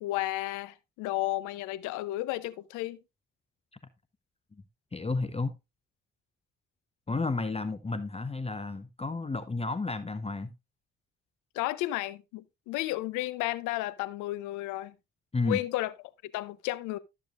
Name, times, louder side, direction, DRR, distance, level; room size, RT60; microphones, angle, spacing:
voice 1, 0.0-3.0 11.5-14.9 15.4-15.9 16.3-17.0, left 17 dB, 90° left, 0.7 m, -33 dB
voice 2, 4.9-5.5 7.1-10.5 15.3-15.6, left 3 dB, 20° left, 0.8 m, -31 dB
13.0 x 7.0 x 2.5 m
supercardioid pair, 60°, 29 cm